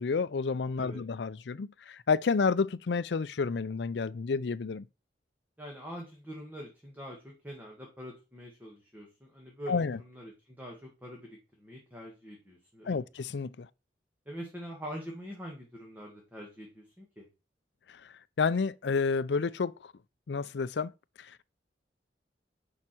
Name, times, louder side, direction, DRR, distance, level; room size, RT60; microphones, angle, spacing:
voice 1, 0.0-4.9 9.7-10.0 12.8-13.7 18.0-19.9 20.3-20.9 21.2-21.5, left 5 dB, 75° left, 0.5 m, -30 dB
voice 2, 5.6-13.0 14.3-17.3, equal, 10° right, 1.8 m, -44 dB
9.7 x 5.7 x 4.5 m
head